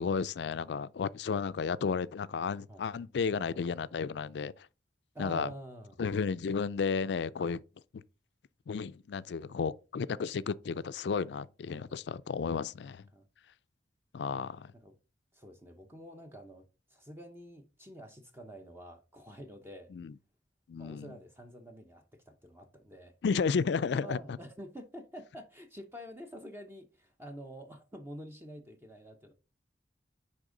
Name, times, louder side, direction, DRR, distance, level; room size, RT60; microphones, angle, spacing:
voice 1, 0.0-4.7 5.2-5.5 6.0-7.6 7.9-8.0 8.7-13.1 14.1-14.7 19.9-20.1 20.7-21.1 23.2-24.4, left 5 dB, 70° left, 0.4 m, -33 dB
voice 2, 5.1-6.0 11.7-11.9 13.1-13.3 14.7-15.0 15.3-19.9 20.8-23.2 23.9-29.3, equal, 15° right, 0.7 m, -48 dB
10.0 x 3.6 x 3.8 m
head